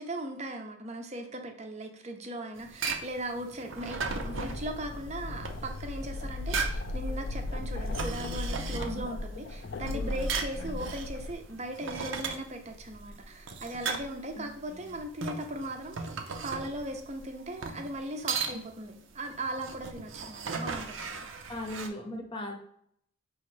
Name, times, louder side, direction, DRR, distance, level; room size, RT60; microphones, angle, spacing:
voice 1, 0.0-21.3, right 1 dB, 35° right, 5 dB, 0.7 m, -38 dB
sound 1, 2.6-21.9, right 5 dB, 70° right, 0.6 m, -38 dB
sound 2, 4.1-11.3, left 2 dB, 55° left, 0.4 m, -36 dB
voice 2, 8.8-9.2 9.9-10.8 14.4-14.9 21.5-22.5, left 1 dB, 25° left, 3 dB, 0.8 m, -40 dB
5.4 x 3.1 x 3.2 m, 0.68 s
head